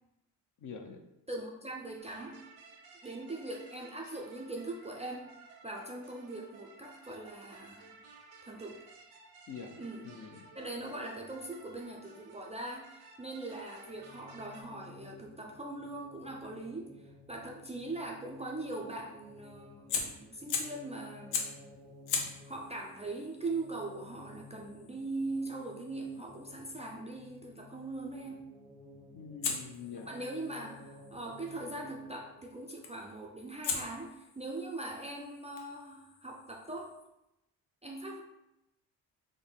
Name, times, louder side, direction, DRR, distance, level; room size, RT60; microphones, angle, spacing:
voice 1, 0.6-1.0 9.5-10.5 29.1-30.1, left 6 dB, 40° left, 4 dB, 0.6 m, -45 dB
voice 2, 1.3-2.4 3.0-5.4 5.6-8.0 8.4-8.8 9.8-10.1 10.5-21.4 22.4-28.5 29.9-36.9 37.8-38.2, right 2 dB, 15° right, -1 dB, 0.4 m, -41 dB
sound 1, 2.0-14.6, right 3 dB, 85° right, 0.7 m, -55 dB
sound 2, 13.9-32.7, left 2 dB, 5° left, 0.7 m, -55 dB
Fire, 19.9-20.9 21.3-21.7 22.1-27.0 29.4-31.5 32.8-33.1 33.6-37.1, left 5 dB, 75° left, 0.8 m, -41 dB
3.7 x 2.1 x 3.8 m, 0.88 s
supercardioid pair, 60°, 47 cm